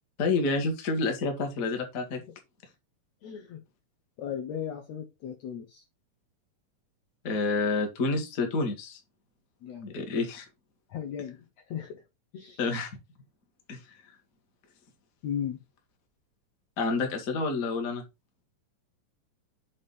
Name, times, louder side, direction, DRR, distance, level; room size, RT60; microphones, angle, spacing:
voice 1, 0.2-2.2 7.2-9.0 9.8-10.4 12.6-12.9 13.7-13.8 16.8-18.0, left 3 dB, 50° left, 1.0 m, -28 dB
voice 2, 3.2-3.6 4.2-5.8 9.6-10.0 10.9-12.0 12.3-12.6 15.2-15.6, left 9 dB, 70° left, 1.7 m, -36 dB
6.7 x 3.5 x 5.2 m
omnidirectional pair, 4.0 m